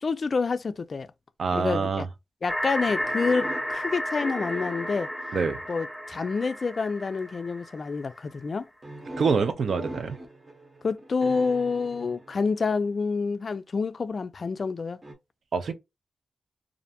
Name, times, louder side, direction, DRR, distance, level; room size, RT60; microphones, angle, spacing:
voice 1, 0.0-1.1 1.5-2.1 2.4-5.1 5.7-8.7 10.8-15.0, left 4 dB, 50° left, 0.3 m, -28 dB
voice 2, 1.4-2.0 5.3-5.6 9.2-10.2 15.5-15.7, right 5 dB, 70° right, 0.5 m, -25 dB
sound 1, 2.5-8.2, left 1 dB, ahead, 1.0 m, -33 dB
sound 2, 2.8-6.2 7.0-7.4 8.8-12.9 15.0-15.1, right 1 dB, 30° right, 0.9 m, -41 dB
2.5 x 2.1 x 2.7 m
wide cardioid pair, 90°, 0 cm